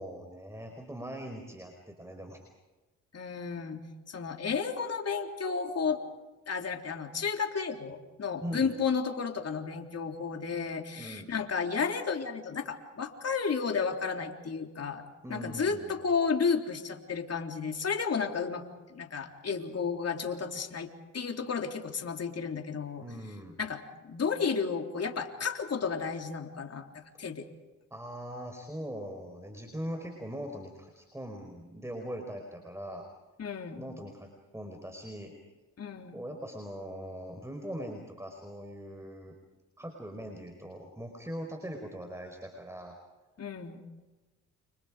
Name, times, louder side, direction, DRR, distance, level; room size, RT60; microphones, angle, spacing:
voice 1, 0.0-2.4 8.4-8.7 10.9-11.3 15.2-16.0 23.0-23.6 27.9-33.1 33.7-35.3 36.1-39.3 39.8-42.9, equal, 10° right, 4 dB, 5.0 m, -41 dB
voice 2, 3.1-3.8 4.1-6.0 6.5-18.6 18.9-23.0 23.6-27.5 33.4-33.8 35.8-36.2 43.4-43.8, left 5 dB, 45° left, 4 dB, 3.7 m, -32 dB
29.5 x 26.0 x 5.1 m, 1.2 s
supercardioid pair, 55°, 34 cm